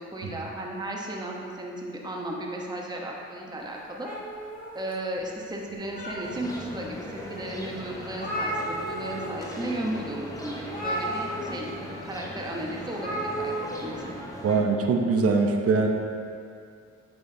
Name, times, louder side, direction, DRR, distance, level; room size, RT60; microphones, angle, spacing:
voice 1, 0.0-4.1 4.7-11.7 12.0-14.1, right 1 dB, 15° right, -1 dB, 1.0 m, -35 dB
sound 1, 4.0-5.2 5.7-6.6 7.2-7.3 7.6-7.7 7.9-9.3 9.6-9.8 10.7-11.7 12.9-13.8, right 1 dB, 30° left, 1.7 m, -33 dB
sound 2, 6.2-14.6, left 1 dB, 10° left, 0.9 m, -39 dB
voice 2, 14.4-15.9, right 4 dB, 50° right, 2 dB, 0.9 m, -22 dB
8.8 x 6.1 x 2.8 m, 2.4 s
cardioid pair, 90°, 30 cm